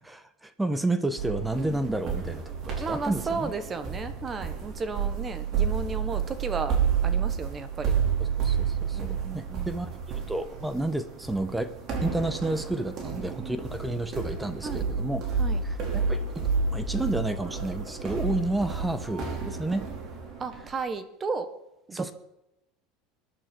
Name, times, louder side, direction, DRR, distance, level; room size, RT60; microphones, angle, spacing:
voice 1, 0.0-3.5 8.2-9.9 10.3-11.7 12.0-15.2 15.6-16.2 16.7-19.9 21.9-22.1, right 2 dB, 5° right, 11 dB, 1.1 m, -31 dB
sound 1, 1.2-20.7, right 6 dB, 40° right, 4.5 m, -30 dB
voice 2, 1.6-2.1 2.8-6.8 7.0-7.9 8.9-9.7 13.1-13.6 14.6-14.9 15.4-15.6 20.4-21.5 21.9-22.1, right 4 dB, 20° right, 11 dB, 1.4 m, -34 dB
22.0 x 11.0 x 4.5 m, 0.90 s
supercardioid pair, 140°, 0 cm